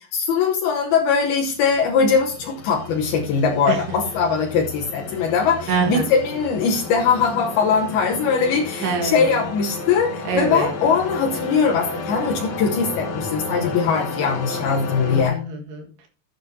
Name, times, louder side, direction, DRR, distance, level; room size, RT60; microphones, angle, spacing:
voice 1, 0.1-15.4, left 5 dB, 75° left, 0 dB, 2.8 m, -21 dB
sound 1, 1.1-15.2, left 3 dB, 60° left, 2.2 m, -33 dB
voice 2, 5.7-6.1 8.8-9.4 10.3-10.7 13.5-13.9 15.0-16.1, right 4 dB, 80° right, 2 dB, 3.8 m, -26 dB
12.5 x 8.9 x 2.8 m, 0.40 s
omnidirectional pair, 4.6 m